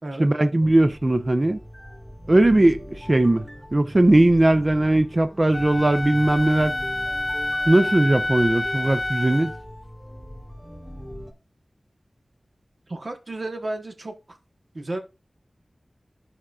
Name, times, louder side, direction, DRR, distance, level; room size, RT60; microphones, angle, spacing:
voice 1, 0.2-1.6 2.3-3.5 3.7-6.7 7.7-9.5, right 1 dB, 35° right, 0.6 m, -19 dB
sound 1, 0.6-11.3, equal, ahead, 1.6 m, -40 dB
Wind instrument woodwind instrument, 5.5-9.6, left 1 dB, 30° left, 0.5 m, -28 dB
voice 2, 12.9-14.4 14.7-15.0, right 2 dB, 55° right, 1.1 m, -32 dB
13.5 x 5.0 x 2.4 m
wide cardioid pair, 70°, 0 cm